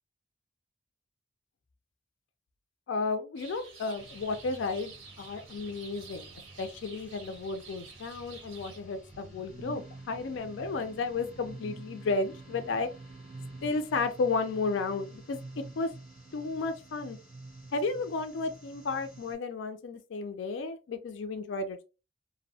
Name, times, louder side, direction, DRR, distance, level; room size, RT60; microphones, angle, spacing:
voice 1, 2.9-6.3 6.6-12.9 13.6-15.4 15.8-15.9 16.3-17.2 17.7-21.8, left 3 dB, 75° left, 0.4 m, -33 dB
sound 1, 3.4-8.8, right 5 dB, 90° right, 0.7 m, -50 dB
sound 2, 4.0-19.3, right 2 dB, 5° right, 1.3 m, -48 dB
2.6 x 2.1 x 2.6 m
head